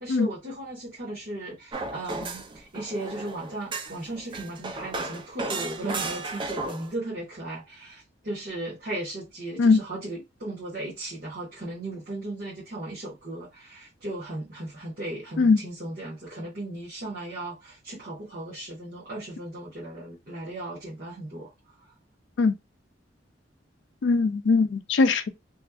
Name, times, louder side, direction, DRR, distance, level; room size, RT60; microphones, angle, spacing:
voice 1, 0.0-21.5, right 1 dB, 50° right, 1.3 m, -36 dB
sound 1, 1.7-6.9, right 3 dB, 25° right, 0.4 m, -34 dB
voice 2, 24.0-25.3, left 4 dB, 70° left, 0.4 m, -20 dB
3.1 x 2.5 x 2.3 m
head